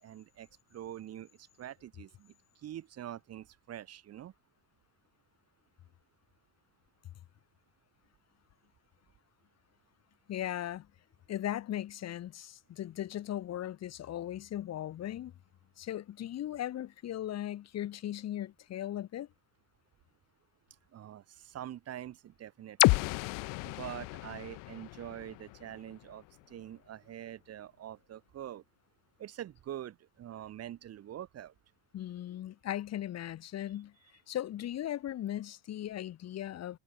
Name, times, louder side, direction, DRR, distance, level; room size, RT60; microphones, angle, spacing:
voice 1, 0.0-2.3 2.6-4.3 20.9-23.1 23.6-28.6 29.2-31.5, right 11 dB, 45° right, 1.6 m, -45 dB
voice 2, 10.3-10.9 11.3-15.3 15.8-19.3 31.9-33.9 34.3-36.8, left 12 dB, 50° left, 1.9 m, -38 dB
sound 1, 22.8-26.7, left 27 dB, 70° left, 0.9 m, -31 dB
supercardioid pair, 85°, 33 cm